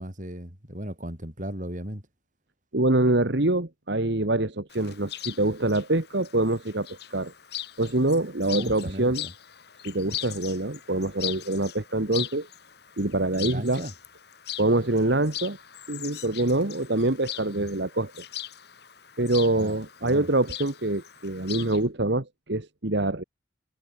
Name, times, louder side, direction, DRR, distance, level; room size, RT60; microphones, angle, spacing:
voice 1, 0.0-2.0 8.5-9.3 13.3-13.9 17.5-17.8 19.5-20.3, equal, 40° right, 5.0 m, -36 dB
voice 2, 2.7-7.3 7.8-9.3 9.8-12.5 13.0-13.9 14.6-15.6 15.9-18.2 19.2-23.2, right 2 dB, 60° right, 1.7 m, -25 dB
Chirp tweet, 4.7-21.8, left 13 dB, 55° left, 1.9 m, -40 dB
head